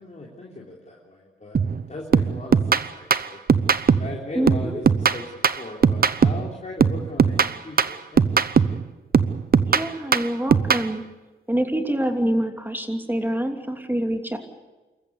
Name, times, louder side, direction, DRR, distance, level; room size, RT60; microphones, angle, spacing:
voice 1, 0.0-1.6 1.9-3.4 4.0-8.5, left 2 dB, 35° left, -3 dB, 3.6 m, -38 dB
sound 1, 1.5-1.8 2.1-4.2 4.5-6.5 6.8-8.8 9.1-10.9, right 6 dB, 45° right, 0.8 m, -20 dB
voice 2, 4.3-4.8 9.7-11.0 11.5-14.4, right 1 dB, 10° right, 5 dB, 2.9 m, -25 dB
27.0 x 14.5 x 8.3 m, 1.2 s
cardioid pair, 65°, 21 cm